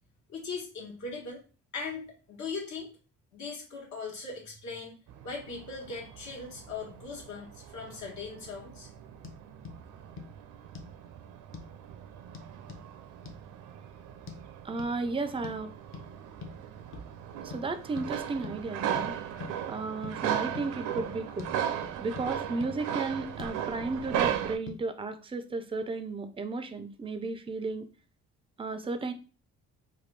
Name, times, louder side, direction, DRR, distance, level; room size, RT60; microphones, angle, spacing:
voice 1, 0.3-1.4 1.7-2.9 3.3-5.0 5.2-8.9, left 4 dB, 70° left, 0 dB, 1.3 m, -39 dB
sound 1, 5.1-24.6, right 10 dB, 80° right, 0.5 m, -37 dB
sound 2, 9.2-9.4 9.6-9.8 10.2-10.3 10.7-11.0 11.5-11.7 12.3-12.8 13.2-13.4 14.3-14.4 14.8-14.9 15.4-15.6 15.9-16.1 16.4-16.6 16.9-17.1 17.5-17.6 18.0-18.1 18.4-18.6 19.0-19.1 19.4-19.6 20.0-20.2 20.5-20.7 21.0-21.1 21.4-21.5 21.8-22.3 22.6-22.7 23.1-23.6 24.2-24.4 24.7-24.8, left 5 dB, 40° left, 0.7 m, -43 dB
voice 2, 14.6-15.7 17.4-19.2 19.7-21.5 22.0-27.9 28.6-29.1, right 3 dB, 20° right, 10 dB, 0.4 m, -34 dB
3.2 x 2.2 x 3.2 m, 0.36 s
cardioid pair, 90°, 30 cm